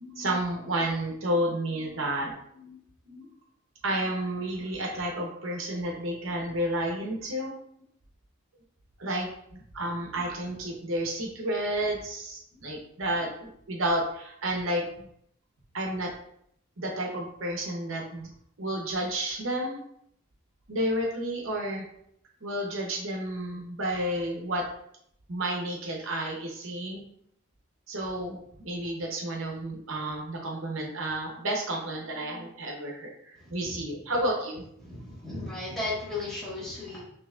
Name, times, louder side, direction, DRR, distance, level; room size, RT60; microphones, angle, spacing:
voice 1, 0.0-2.8 3.1-3.3 3.8-7.5 9.0-15.1 15.7-16.1 16.8-18.3 18.6-19.8 20.7-21.8 22.4-24.6 25.3-27.0 27.9-34.6, right 1 dB, 65° right, 0 dB, 0.8 m, -31 dB
voice 2, 33.4-33.9 34.8-37.0, left 2 dB, 5° left, -10 dB, 1.4 m, -35 dB
5.7 x 2.9 x 2.4 m, 0.70 s
head